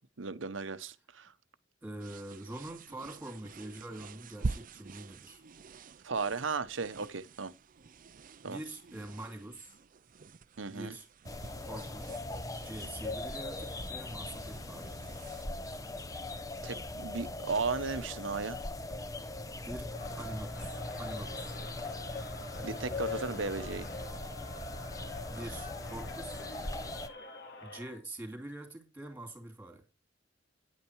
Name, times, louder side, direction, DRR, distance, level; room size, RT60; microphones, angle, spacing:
voice 1, 0.2-1.3 6.0-7.5 8.4-8.6 10.6-11.0 16.6-18.6 22.6-23.9, right 4 dB, 80° right, 0.9 m, -35 dB
voice 2, 1.8-5.4 7.0-7.1 8.4-9.7 10.7-11.1 11.5-12.3 12.6-14.9 19.6-21.5 25.3-26.4 27.6-29.8, right 1 dB, 10° right, 2.8 m, -44 dB
sound 1, 2.0-15.5, right 3 dB, 45° right, 0.5 m, -46 dB
sound 2, 11.2-27.1, left 2 dB, 20° left, 1.0 m, -40 dB
Crowd, 19.9-28.0, left 1 dB, 60° left, 2.4 m, -48 dB
10.0 x 8.7 x 4.6 m
head